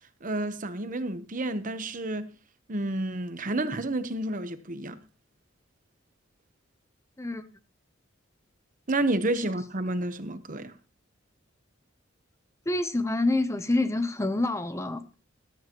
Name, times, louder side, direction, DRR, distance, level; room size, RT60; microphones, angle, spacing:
voice 1, 0.2-2.3 2.7-5.0 8.9-10.7, right 2 dB, 45° right, 1.0 m, -30 dB
voice 2, 12.7-15.2, left 2 dB, 15° left, 0.7 m, -27 dB
13.5 x 13.0 x 3.0 m
head